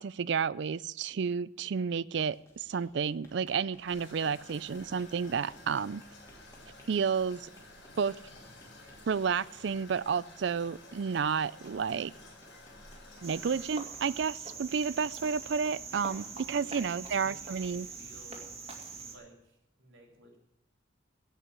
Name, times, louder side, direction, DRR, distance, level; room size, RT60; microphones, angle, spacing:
voice 1, 0.0-6.0 6.9-7.5 8.0-8.2 9.1-12.1 13.2-17.9, right 6 dB, 65° right, 20 dB, 0.4 m, -31 dB
sound 1, 2.1-19.1, equal, 15° left, 2.8 m, -60 dB
Toilet flush, 3.9-13.7, left 2 dB, 65° left, 5.5 m, -52 dB
Cricket, 13.2-19.2, right 4 dB, 30° right, 2.1 m, -43 dB
voice 2, 16.5-18.6 19.0-20.4, right 1 dB, 85° right, 1 dB, 3.5 m, -55 dB
17.0 x 5.7 x 7.3 m, 0.85 s
head